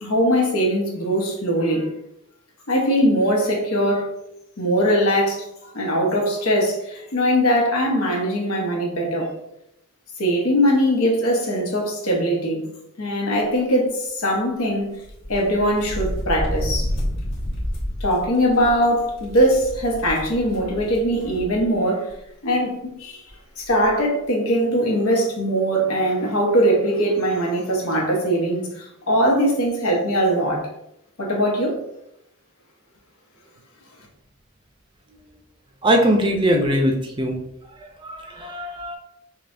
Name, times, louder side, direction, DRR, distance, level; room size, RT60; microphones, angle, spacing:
voice 1, 0.0-1.9 2.7-4.1 4.6-5.5 5.7-9.3 10.2-12.7 13.0-15.0 15.3-16.9 18.0-22.1 22.4-23.2 23.6-30.7 31.2-31.8, equal, 90° left, 1.1 m, -21 dB
sound 1, 15.0-21.7 22.1-22.2 23.3-23.4 23.6-23.9, equal, 60° left, 1.1 m, -30 dB
voice 2, 35.8-37.4 37.8-39.0, equal, 20° right, 0.5 m, -21 dB
5.4 x 2.3 x 2.6 m
head